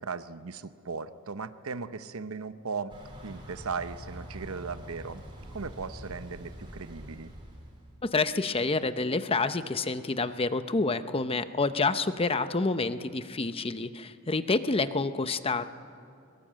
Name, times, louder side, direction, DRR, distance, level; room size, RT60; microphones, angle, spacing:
voice 1, 0.0-3.0 3.2-5.2 5.5-7.3, right 4 dB, 75° right, 12 dB, 0.8 m, -37 dB
Thunder / Bicycle, 2.9-7.9, equal, 25° right, 4.2 m, -45 dB
voice 2, 8.0-15.7, left 3 dB, 25° left, 11 dB, 0.7 m, -28 dB
22.0 x 21.5 x 7.5 m, 2.5 s
head